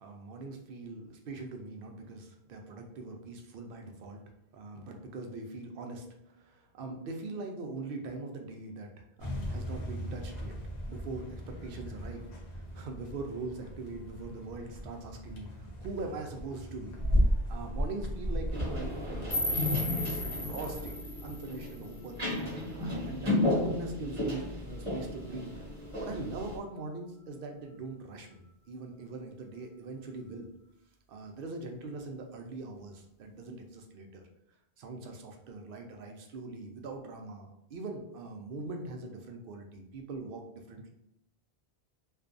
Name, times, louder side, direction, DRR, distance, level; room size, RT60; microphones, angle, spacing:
voice 1, 0.0-4.2 4.5-10.6 10.9-12.3 12.5-17.0 17.5-22.3 22.8-25.6 26.0-30.5 31.1-34.2 34.8-40.9, right 3 dB, 65° right, 3 dB, 0.7 m, -42 dB
sound 1, 9.2-21.0, equal, 50° left, 0.6 m, -35 dB
sound 2, 18.5-26.6, left 2 dB, 35° right, 0.9 m, -34 dB
sound 3, 19.3-22.3, left 1 dB, 85° left, 1.1 m, -36 dB
2.5 x 2.3 x 2.4 m, 0.83 s
omnidirectional pair, 1.1 m